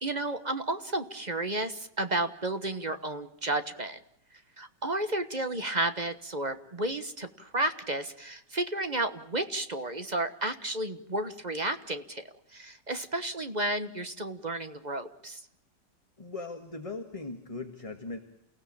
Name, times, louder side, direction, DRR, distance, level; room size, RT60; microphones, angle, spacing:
voice 1, 0.0-4.0 4.6-12.2 12.5-15.4, right 2 dB, 25° right, 9 dB, 1.3 m, -32 dB
voice 2, 16.2-18.2, left 3 dB, 20° left, 5 dB, 1.7 m, -39 dB
29.0 x 16.5 x 8.7 m, 0.78 s
omnidirectional pair, 1.9 m